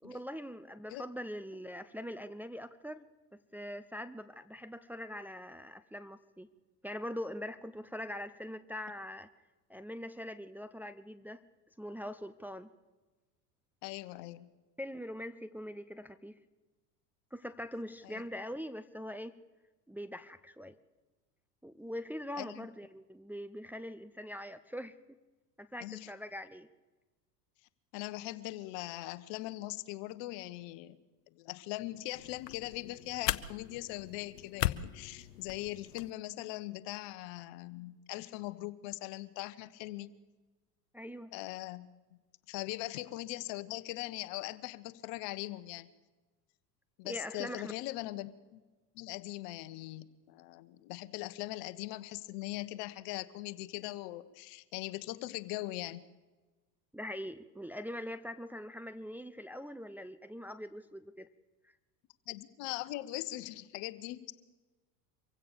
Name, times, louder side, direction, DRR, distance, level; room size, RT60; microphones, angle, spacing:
voice 1, 0.0-6.5 6.8-9.3 9.7-11.5 11.8-12.7 14.8-16.4 17.3-19.4 19.9-20.8 21.6-25.0 25.6-26.7 40.9-41.3 47.0-47.7 56.9-61.3 61.6-61.7, equal, 5° right, 10 dB, 0.8 m, -43 dB
voice 2, 13.8-14.5 18.0-18.2 22.4-22.7 25.8-26.1 27.9-31.0 31.3-40.1 41.3-41.9 42.5-45.9 47.0-48.6 48.9-56.0 62.3-64.3, left 18 dB, 60° left, 14 dB, 1.4 m, -41 dB
sound 1, 32.1-36.1, left 13 dB, 85° left, 0.9 m, -38 dB
25.0 x 16.0 x 6.9 m, 1.2 s
hypercardioid pair, 85°, 48 cm